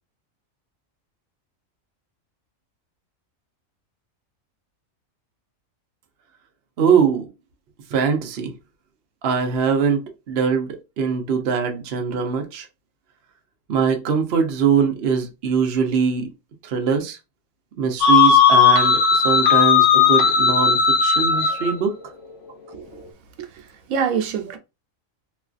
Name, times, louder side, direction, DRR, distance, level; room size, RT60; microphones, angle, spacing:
voice 1, 6.8-7.3 7.9-8.5 9.2-10.0 10.3-10.7 11.0-12.7 13.7-16.3 16.6-17.2 17.8-21.9, right 6 dB, 55° right, 0.8 m, -22 dB
sound 1, 18.0-21.7, left 6 dB, 65° left, 1.0 m, -16 dB
voice 2, 22.7-23.0 23.4-24.6, right 7 dB, 85° right, 1.1 m, -26 dB
3.0 x 2.3 x 2.4 m
omnidirectional pair, 1.4 m